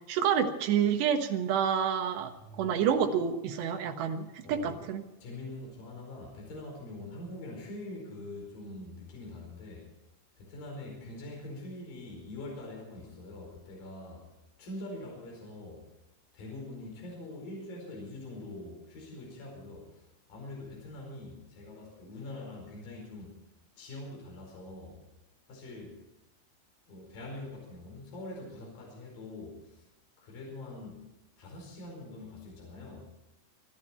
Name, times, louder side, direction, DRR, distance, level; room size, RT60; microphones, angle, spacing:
voice 1, 0.1-2.3 2.6-5.0, right 8 dB, 75° right, 6 dB, 3.4 m, -28 dB
voice 2, 2.4-2.9 4.4-4.8 5.2-9.9 10.4-14.3 14.6-15.9 16.3-23.4 23.8-25.0 25.5-26.0 26.9-29.9 30.2-31.0 31.4-33.1, left 2 dB, 55° left, -1 dB, 6.4 m, -44 dB
25.0 x 12.0 x 4.4 m, 0.96 s
omnidirectional pair, 5.0 m